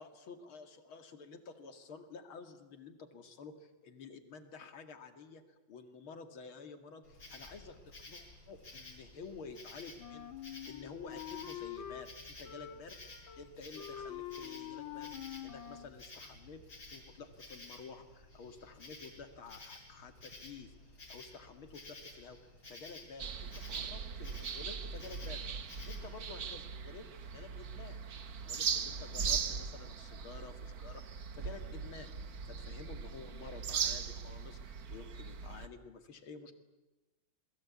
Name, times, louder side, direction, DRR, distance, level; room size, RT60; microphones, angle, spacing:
voice 1, 0.0-13.0 13.4-16.6 16.9-22.4 22.7-28.0 28.4-36.5, left 4 dB, 85° left, 8 dB, 2.9 m, -51 dB
Insect, 7.0-26.2, left 2 dB, 50° left, 6.6 m, -53 dB
Wind instrument woodwind instrument, 10.0-12.1 12.4-13.5 13.7-15.9, left 11 dB, 70° left, 2.2 m, -45 dB
sound 1, 23.2-35.7, right 6 dB, 50° right, 1.5 m, -39 dB
28.0 x 21.5 x 8.6 m, 1.1 s
omnidirectional pair, 2.2 m